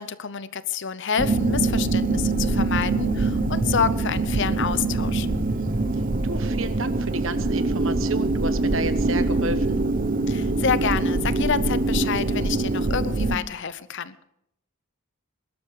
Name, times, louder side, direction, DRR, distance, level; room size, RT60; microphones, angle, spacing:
voice 1, 0.0-5.3 10.3-14.1, left 6 dB, 55° left, 15 dB, 0.7 m, -28 dB
sound 1, 1.2-13.4, right 2 dB, 40° right, 0.8 m, -24 dB
voice 2, 5.5-9.8, right 2 dB, 65° right, 11 dB, 1.1 m, -32 dB
20.5 x 12.5 x 4.8 m, 0.78 s
head